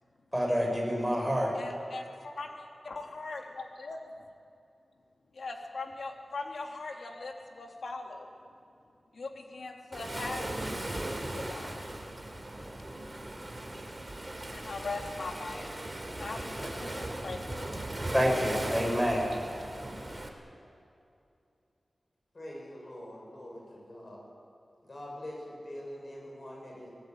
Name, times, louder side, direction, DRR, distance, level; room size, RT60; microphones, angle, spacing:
voice 1, 0.3-1.5 18.1-19.3, equal, ahead, 0 dB, 6.5 m, -27 dB
voice 2, 1.5-4.0 5.3-8.3 9.1-11.9 12.7-12.8 13.5-13.6 13.9-14.0 14.5-17.8, left 3 dB, 80° left, 2 dB, 2.9 m, -41 dB
Waves surf, 9.9-20.3, right 1 dB, 25° right, 3.3 m, -38 dB
voice 3, 22.3-24.3 24.8-26.9, left 1 dB, 45° left, -2 dB, 7.5 m, -44 dB
25.5 x 19.0 x 9.2 m, 2.6 s
wide cardioid pair, 90°, 0 cm